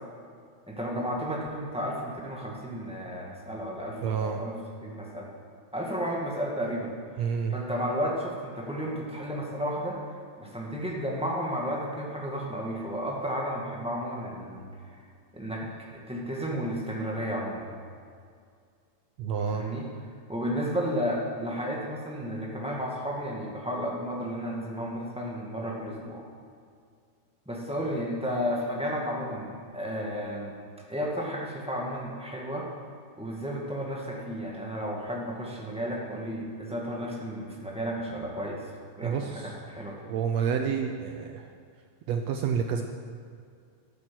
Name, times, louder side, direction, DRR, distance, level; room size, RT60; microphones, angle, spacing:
voice 1, 0.7-4.5 4.8-5.3 5.7-6.9 7.5-10.0 10.4-14.7 15.3-15.6 15.9-17.7 19.5-19.9 20.3-26.2 27.4-30.6 30.9-32.7 33.2-40.1, equal, 5° right, -3 dB, 0.5 m, -33 dB
voice 2, 4.0-4.4 7.2-7.5 19.2-19.6 39.0-39.5 40.1-41.5 42.1-42.8, right 7 dB, 80° right, 4 dB, 1.5 m, -29 dB
12.5 x 9.3 x 7.8 m, 2.3 s
omnidirectional pair, 3.8 m